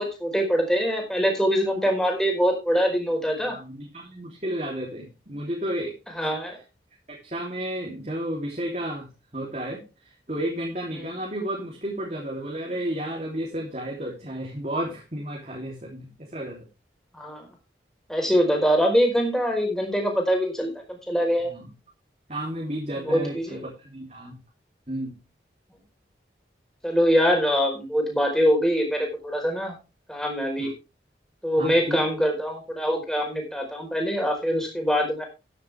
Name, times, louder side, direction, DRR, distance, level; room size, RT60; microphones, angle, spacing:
voice 1, 0.0-3.6 6.2-6.6 11.0-11.1 17.1-17.5 18.1-20.7 21.1-21.5 23.1-23.6 26.8-29.7 30.1-30.7 31.4-35.2, equal, 5° left, 1 dB, 4.7 m, -23 dB
voice 2, 3.5-5.9 7.1-9.1 9.3-9.8 10.3-16.6 21.4-21.7 22.3-24.4 24.9-25.2 30.6-30.7 31.6-32.0, right 1 dB, 40° right, -1 dB, 3.3 m, -32 dB
13.5 x 10.5 x 3.5 m, 0.29 s
head